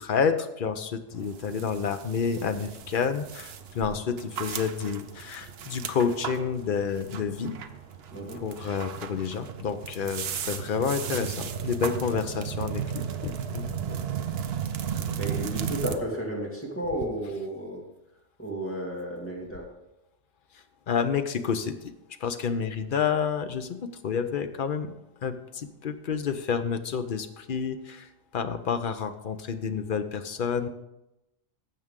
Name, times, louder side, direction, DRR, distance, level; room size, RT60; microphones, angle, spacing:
voice 1, 0.0-7.5 8.4-13.7 20.9-21.9 22.2-24.9 25.2-30.7, left 6 dB, 55° left, 9 dB, 0.8 m, -29 dB
sound 1, 1.1-16.0, right 8 dB, 65° right, 0.9 m, -35 dB
voice 2, 8.1-8.4 13.8-14.2 15.2-17.8 18.4-19.7, right 1 dB, 10° left, -3 dB, 2.1 m, -33 dB
12.0 x 7.6 x 3.7 m, 0.91 s
omnidirectional pair, 1.2 m